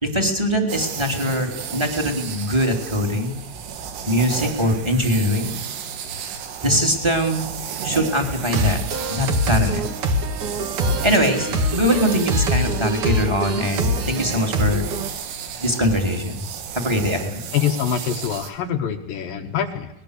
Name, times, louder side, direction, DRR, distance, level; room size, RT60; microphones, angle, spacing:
voice 1, 0.0-3.4 4.1-5.6 6.6-7.5 7.8-8.8 9.1-9.9 11.0-14.8 15.6-16.3 16.7-17.4, equal, 10° right, 3 dB, 1.8 m, -22 dB
sound 1, 0.7-18.5, right 8 dB, 85° right, 4.8 m, -33 dB
sound 2, 8.5-15.1, equal, 55° right, 2.3 m, -24 dB
voice 2, 17.5-19.9, left 8 dB, 65° left, 7 dB, 2.3 m, -24 dB
24.0 x 20.0 x 6.7 m, 0.85 s
omnidirectional pair, 5.6 m